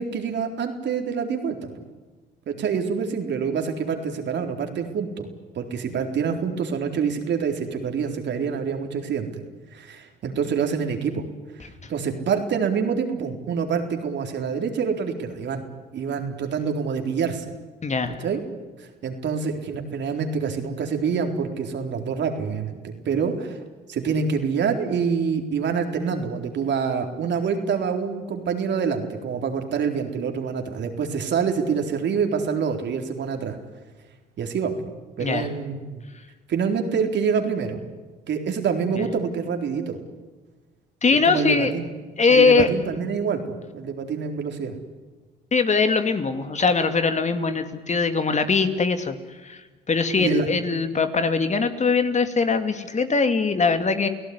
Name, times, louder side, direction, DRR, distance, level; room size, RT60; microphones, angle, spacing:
voice 1, 0.0-1.7 2.5-5.3 5.5-9.4 9.7-11.3 11.9-15.6 15.9-17.5 18.2-18.4 18.8-23.6 23.9-33.6 34.4-34.8 35.2-36.1 36.5-37.8 38.3-40.0 41.2-41.9 42.3-44.8 50.2-50.5, right 6 dB, 60° right, 5 dB, 4.1 m, -26 dB
voice 2, 17.8-18.2 35.2-35.5 39.0-39.1 41.0-41.7 42.2-42.7 45.5-49.2 49.4-49.6 49.9-54.1, left 4 dB, 35° left, 8 dB, 2.6 m, -21 dB
30.0 x 17.0 x 9.7 m, 1.3 s
supercardioid pair, 70°, 21 cm